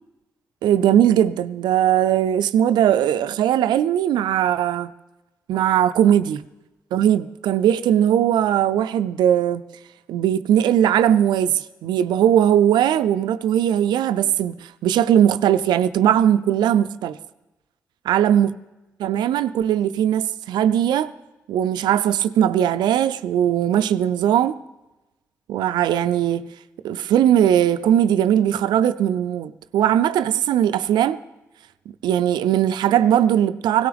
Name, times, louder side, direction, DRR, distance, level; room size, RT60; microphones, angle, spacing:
voice 1, 0.6-4.9 5.5-6.4 6.9-9.6 10.1-17.2 18.1-18.5 19.0-21.1 21.5-24.6 25.5-26.5 26.8-31.2 32.0-33.9, right 10 dB, 80° right, 0.5 m, -19 dB
17.5 x 17.0 x 3.5 m
hypercardioid pair, 45°, 7 cm